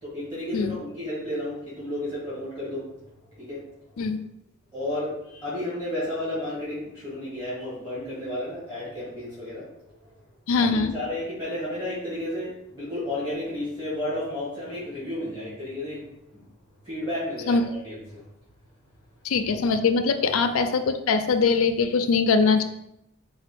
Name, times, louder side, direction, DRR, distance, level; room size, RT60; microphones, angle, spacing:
voice 1, 0.0-2.9 3.4-3.6 3.9-4.1 4.7-10.1 10.6-16.5 16.8-18.2 20.2-20.3, left 1 dB, 15° right, -11 dB, 1.5 m, -32 dB
voice 2, 10.5-10.9 17.5-17.6 19.2-22.6, left 4 dB, 65° left, 7 dB, 0.4 m, -22 dB
4.2 x 2.2 x 4.5 m, 0.84 s
head